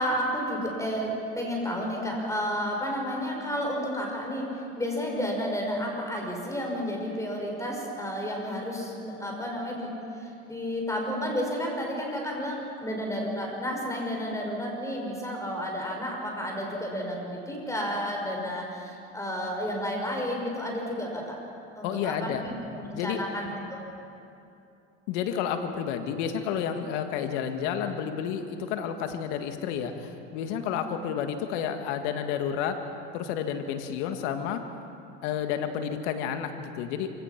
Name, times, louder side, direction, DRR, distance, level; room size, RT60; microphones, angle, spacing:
voice 1, 0.0-4.5 4.8-21.4 21.8-23.8 30.6-30.8, equal, 10° left, 0 dB, 5.8 m, -31 dB
voice 2, 21.8-22.4 22.9-23.2 25.1-32.8 33.1-34.6 35.2-37.1, left 8 dB, 80° left, 7 dB, 1.9 m, -30 dB
27.5 x 17.0 x 5.9 m, 2.7 s
supercardioid pair, 90°, 35 cm